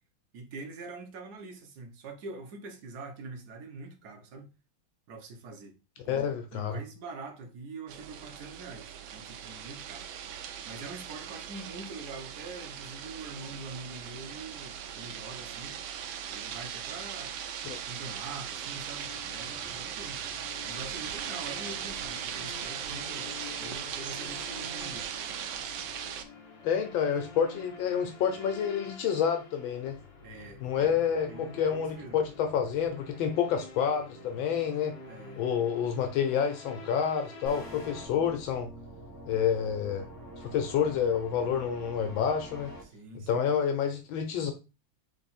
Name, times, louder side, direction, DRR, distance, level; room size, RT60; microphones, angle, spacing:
voice 1, 0.3-4.5 5.1-5.8 6.0-10.1 10.6-15.8 16.3-17.4 17.9-20.2 20.6-25.1 30.2-31.0 31.3-32.2 35.0-35.4 42.8-43.4, right 3 dB, 55° right, 1.5 m, -44 dB
voice 2, 6.1-6.8 17.6-17.8 26.6-30.0 30.6-34.9 35.4-38.7 39.3-40.0 40.4-42.7 43.1-44.5, left 8 dB, 80° left, 1.4 m, -29 dB
sound 1, 7.9-26.2, right 8 dB, 80° right, 1.4 m, -39 dB
sound 2, 19.0-38.1, left 3 dB, 55° left, 1.5 m, -48 dB
sound 3, 37.4-42.8, equal, 15° right, 1.1 m, -45 dB
3.8 x 3.3 x 4.2 m
omnidirectional pair, 2.2 m